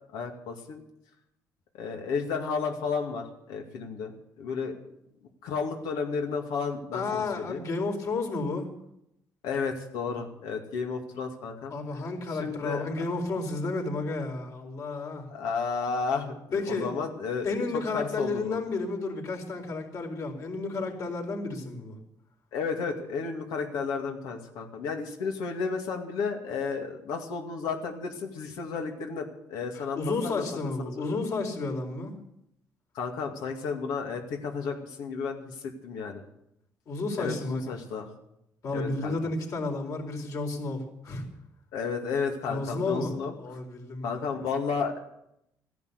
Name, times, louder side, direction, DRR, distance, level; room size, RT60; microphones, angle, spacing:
voice 1, 0.1-0.8 1.7-4.1 4.4-4.7 5.4-7.6 9.4-11.7 12.3-12.8 15.3-18.6 22.5-30.5 30.8-31.2 32.9-36.2 37.2-38.1 38.7-39.1 41.7-43.3 44.0-45.0, left 5 dB, 85° left, 2 dB, 2.4 m, -32 dB
voice 2, 6.9-8.7 11.7-15.3 16.5-16.9 17.4-22.0 29.7-32.1 36.9-37.8 38.6-41.2 42.5-43.1 43.4-44.2, left 3 dB, 55° left, 2 dB, 4.3 m, -32 dB
15.0 x 11.0 x 8.1 m, 0.79 s
cardioid pair, 90°, 7 cm